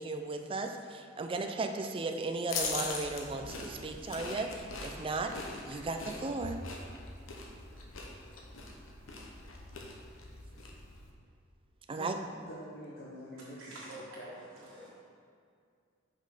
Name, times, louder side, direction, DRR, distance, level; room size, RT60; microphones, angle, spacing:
voice 1, 0.0-5.3 5.6-6.6 11.9-12.2, right 3 dB, 25° right, 6 dB, 0.4 m, -36 dB
sound 1, 2.5-11.1, left 3 dB, 75° left, 0.9 m, -42 dB
voice 2, 12.5-13.8 14.2-14.3, equal, 50° left, -6 dB, 0.9 m, -46 dB
voice 3, 13.6-14.9, right 1 dB, 75° right, -11 dB, 1.6 m, -47 dB
5.6 x 5.5 x 4.9 m, 2.2 s
head